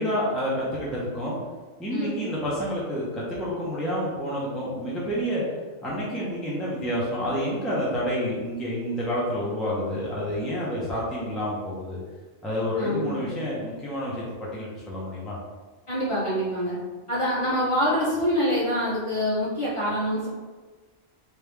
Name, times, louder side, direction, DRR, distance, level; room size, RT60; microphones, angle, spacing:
voice 1, 0.0-1.4 1.8-5.4 5.8-12.0 12.4-15.4, equal, ahead, -7 dB, 0.7 m, -29 dB
voice 2, 1.9-2.2 12.8-13.2 15.9-16.8 17.1-20.3, equal, 30° left, -8 dB, 1.0 m, -25 dB
3.4 x 3.0 x 3.4 m, 1.3 s
omnidirectional pair, 1.2 m